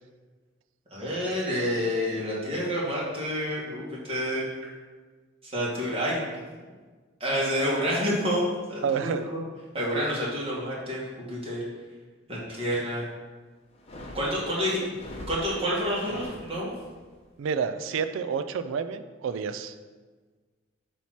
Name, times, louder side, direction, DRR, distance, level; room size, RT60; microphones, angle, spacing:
voice 1, 0.9-4.5 5.5-6.2 7.2-9.4 9.7-11.0 11.3-11.6 12.3-13.0 14.1-14.8 15.3-16.7, equal, 30° right, -6 dB, 1.7 m, -28 dB
voice 2, 8.8-9.3 17.4-19.7, right 6 dB, 75° right, 10 dB, 0.3 m, -29 dB
sound 1, 13.7-17.0, left 1 dB, 30° left, 0.8 m, -43 dB
7.0 x 3.0 x 5.8 m, 1.4 s
head